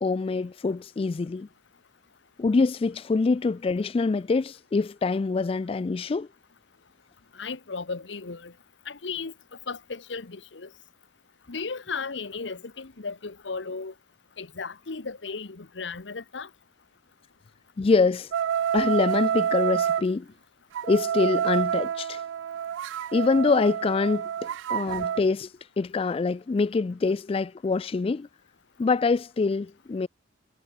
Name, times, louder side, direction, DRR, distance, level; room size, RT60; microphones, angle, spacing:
voice 1, 0.0-1.5 2.4-6.3 17.8-18.3 18.7-20.3 20.9-22.2 23.1-28.3 28.8-30.1, left 4 dB, 30° left, 0.3 m, -25 dB
voice 2, 7.3-8.5 8.9-9.3 9.7-10.7 11.5-13.9 14.4-16.5, left 4 dB, 75° left, 1.1 m, -35 dB
sound 1, 18.3-20.1 20.7-25.2, right 9 dB, 80° right, 0.3 m, -28 dB
head